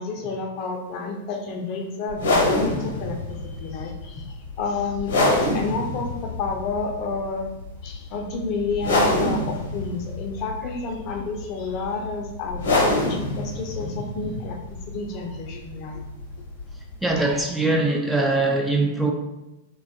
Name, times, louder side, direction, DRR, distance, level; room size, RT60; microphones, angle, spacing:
voice 1, 0.0-7.5 7.8-16.0, left 3 dB, 45° left, 2 dB, 0.5 m, -30 dB
sound 1, 2.1-17.4, left 2 dB, 80° left, 0.8 m, -27 dB
voice 2, 17.0-19.1, right 2 dB, 5° right, 1 dB, 0.4 m, -22 dB
2.7 x 2.2 x 2.7 m, 0.95 s
hypercardioid pair, 110°, 0 cm